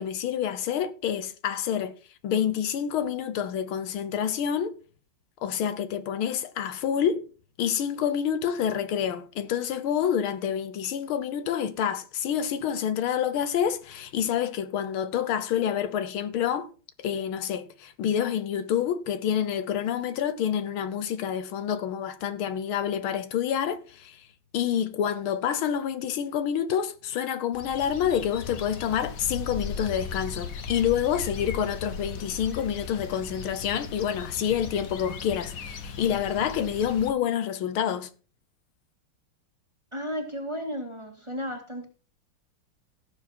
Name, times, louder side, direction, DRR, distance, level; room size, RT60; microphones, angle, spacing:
voice 1, 0.0-1.9 2.2-4.7 5.4-7.2 7.6-16.7 17.0-24.3 24.5-38.1, left 9 dB, 75° left, 1.7 m, -28 dB
sound 1, 27.5-37.1, left 5 dB, 45° left, 1.3 m, -37 dB
voice 2, 39.9-41.9, equal, 15° right, 1.8 m, -33 dB
16.5 x 7.2 x 4.4 m
omnidirectional pair, 2.4 m